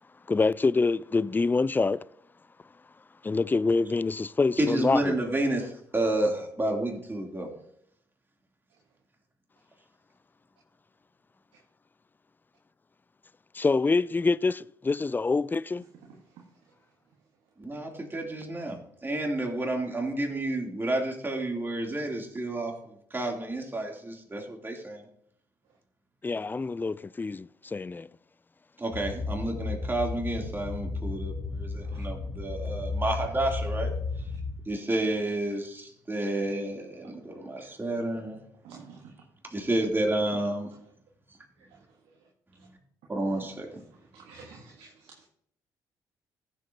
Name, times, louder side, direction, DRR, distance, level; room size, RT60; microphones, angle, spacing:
voice 1, 0.3-2.0 3.2-5.2 13.5-15.8 26.2-28.1, left 3 dB, 20° left, 0.3 m, -26 dB
voice 2, 4.6-7.5 17.6-25.0 28.8-33.9 34.7-38.4 39.5-40.7 43.1-43.8, right 1 dB, 25° right, 3.0 m, -30 dB
sound 1, 28.9-34.6, left 3 dB, 45° left, 2.6 m, -33 dB
voice 3, 38.6-39.0 43.3-43.4 44.1-44.9, right 5 dB, 70° right, 1.4 m, -47 dB
15.0 x 7.7 x 2.8 m
hypercardioid pair, 50°, 10 cm